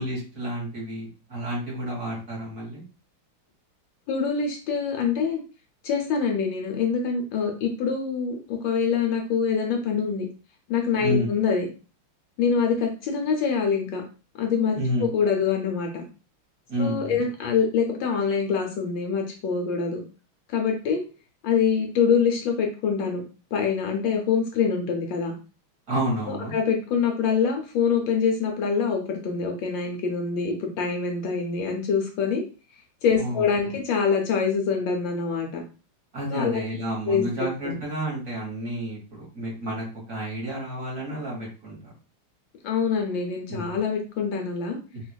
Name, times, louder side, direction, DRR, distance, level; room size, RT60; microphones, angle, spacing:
voice 1, 0.0-2.8 11.0-11.3 14.7-15.1 16.7-17.2 25.9-26.5 33.2-33.5 36.1-41.9 43.5-43.8 44.9-45.0, right 1 dB, 45° right, -4 dB, 1.5 m, -30 dB
voice 2, 4.1-5.4 5.8-10.3 10.7-11.7 12.4-14.0 14.4-16.0 16.8-20.0 20.5-21.0 21.4-23.2 23.5-25.3 26.3-32.4 33.0-35.6 36.3-36.6 37.1-37.8 42.6-44.8, left 6 dB, 70° left, 2 dB, 1.3 m, -25 dB
4.4 x 2.4 x 2.3 m, 0.35 s
omnidirectional pair, 2.3 m